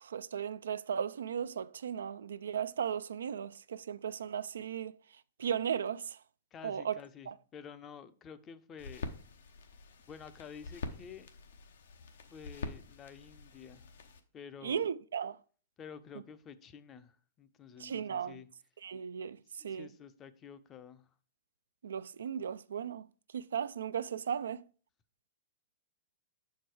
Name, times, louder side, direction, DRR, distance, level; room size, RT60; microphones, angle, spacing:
voice 1, 0.0-5.0 5.4-6.2 6.6-7.0 7.3-7.4 14.6-15.4 17.8-18.4 18.8-19.4 19.6-19.9 21.8-23.1 23.3-24.6, right 8 dB, 90° right, 0.3 m, -36 dB
voice 2, 6.5-9.0 10.1-11.3 12.3-13.9 14.3-14.9 15.8-18.5 19.6-21.1, left 7 dB, 25° left, 0.5 m, -50 dB
sound 1, 8.8-14.2, left 4 dB, 85° left, 0.9 m, -45 dB
6.1 x 4.6 x 4.6 m
hypercardioid pair, 140°, 0 cm